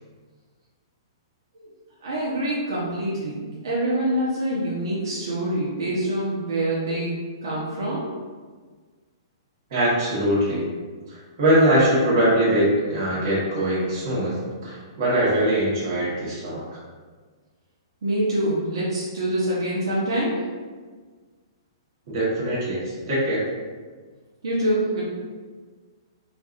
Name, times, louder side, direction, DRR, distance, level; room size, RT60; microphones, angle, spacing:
voice 1, 2.0-8.1 18.0-20.4 24.4-25.0, right 1 dB, 65° right, -7 dB, 1.0 m, -25 dB
voice 2, 9.7-10.7 11.1-16.6 22.1-23.4, right 1 dB, 40° right, -8 dB, 1.4 m, -22 dB
4.6 x 2.5 x 2.5 m, 1.5 s
hypercardioid pair, 175°, 3 cm